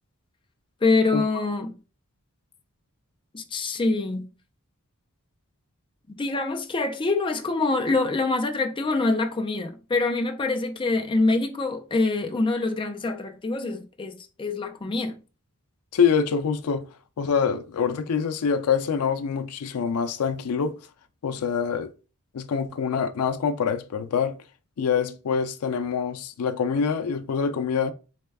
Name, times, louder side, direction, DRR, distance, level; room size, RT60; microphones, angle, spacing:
voice 1, 0.8-1.7 3.3-4.3 6.2-15.2, left 3 dB, 25° left, 0.4 m, -25 dB
voice 2, 15.9-16.9 17.2-20.8 21.2-21.9 22.3-24.4 24.8-27.9, left 6 dB, 90° left, 0.4 m, -25 dB
4.2 x 2.2 x 3.4 m
head